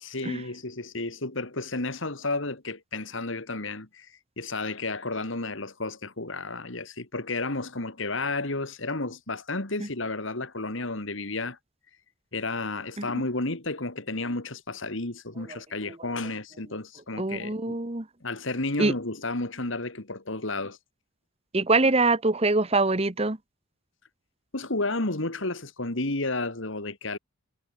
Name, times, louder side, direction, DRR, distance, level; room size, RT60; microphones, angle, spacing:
voice 1, 0.0-4.1 4.4-11.6 12.3-17.7 18.2-20.8 24.5-27.2, left 2 dB, 65° left, 2.5 m, -32 dB
voice 2, 17.2-18.0 18.8-18.9 21.5-23.4, right 3 dB, 30° right, 1.2 m, -24 dB
head